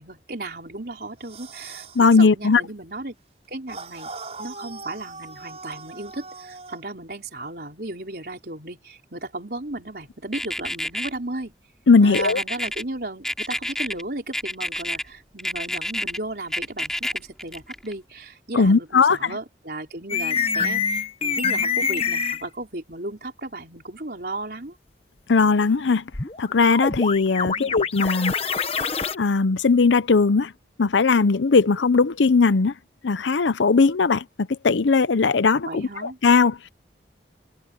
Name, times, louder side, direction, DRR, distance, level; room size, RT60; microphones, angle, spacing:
voice 1, 0.0-1.9 2.2-3.2 3.5-4.1 4.4-11.5 12.0-24.8 27.4-27.9 35.7-36.2, right 2 dB, 60° right, 4.1 m, -35 dB
sound 1, 1.2-2.0 3.7-6.8, right 3 dB, 35° right, 4.9 m, -40 dB
voice 2, 2.0-2.6 11.9-12.4 18.6-19.3 25.3-26.0 26.4-28.3 29.1-30.5 30.8-32.7 33.0-34.2 34.6-36.7, left 4 dB, 90° left, 0.7 m, -18 dB
sound 2, 10.3-11.1 12.1-12.8 13.2-14.0 14.3-15.0 15.4-16.2 16.5-17.9, left 1 dB, 5° left, 2.7 m, -28 dB
sound 3, 20.1-22.4 26.1-29.1, left 5 dB, 35° left, 1.2 m, -25 dB
head